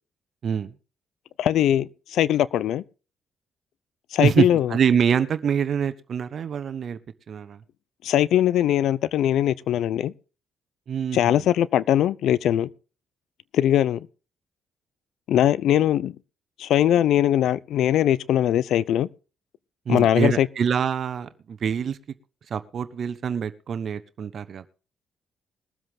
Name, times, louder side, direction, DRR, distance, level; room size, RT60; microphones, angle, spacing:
voice 1, 0.4-0.7 4.2-7.0 7.3-7.6 10.9-11.4 19.9-22.0 22.5-24.7, right 7 dB, 55° right, 1.1 m, -25 dB
voice 2, 1.4-2.8 4.1-4.7 8.0-10.1 11.1-12.7 13.5-14.1 15.3-16.2 16.6-19.1 19.9-20.5, left 11 dB, 75° left, 0.7 m, -21 dB
21.5 x 7.8 x 3.7 m
cardioid pair, 90°, 0 cm